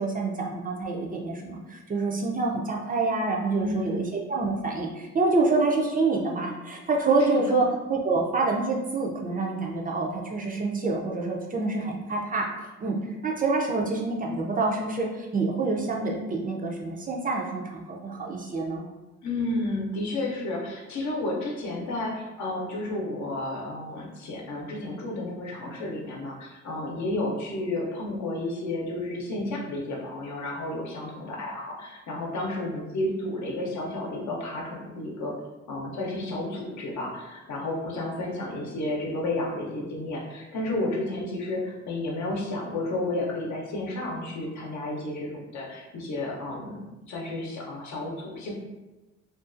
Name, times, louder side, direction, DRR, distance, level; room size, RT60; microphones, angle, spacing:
voice 1, 0.0-12.5 12.8-18.9, right 3 dB, 30° right, -1 dB, 0.4 m, -27 dB
voice 2, 3.6-4.0 7.3-7.6 19.2-35.3 35.7-48.5, left 2 dB, 65° left, -2 dB, 0.7 m, -32 dB
2.5 x 2.3 x 2.4 m, 1.1 s
cardioid pair, 90°, 30 cm